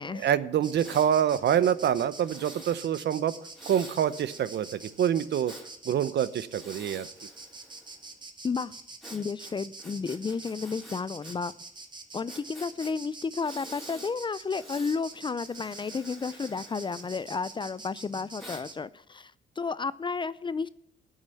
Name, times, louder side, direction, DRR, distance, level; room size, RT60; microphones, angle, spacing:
voice 1, 0.1-3.3 3.7-5.5 5.8-7.1, right 9 dB, 60° right, 0.7 m, -26 dB
Insect, 0.6-18.8, right 3 dB, 20° right, 1.7 m, -46 dB
Breathing, 0.8-1.1 2.2-2.8 3.5-5.7 6.4-8.1 9.0-11.4 11.6-11.7 12.3-12.9 13.4-14.1 14.5-15.0 15.4-17.6 18.4-18.6, equal, ahead, 3.5 m, -49 dB
voice 2, 9.1-11.5 12.1-19.3 19.6-20.7, left 5 dB, 25° left, 0.4 m, -32 dB
12.0 x 6.5 x 8.4 m
cardioid pair, 90°, 20 cm